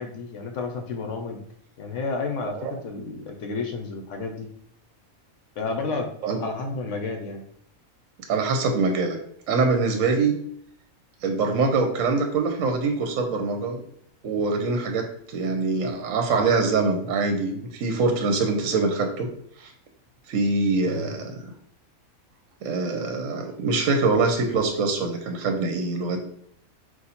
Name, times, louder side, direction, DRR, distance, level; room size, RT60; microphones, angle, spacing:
voice 1, 0.0-1.4 1.8-4.5 5.6-6.1 6.4-7.4 20.9-21.1, left 4 dB, 65° left, 4 dB, 0.9 m, -31 dB
voice 2, 8.3-9.2 9.5-10.3 11.2-13.8 14.2-19.3 19.6-19.7 20.3-21.4 22.6-26.2, right 3 dB, 70° right, 4 dB, 0.9 m, -24 dB
4.0 x 2.5 x 4.1 m, 0.68 s
omnidirectional pair, 1.5 m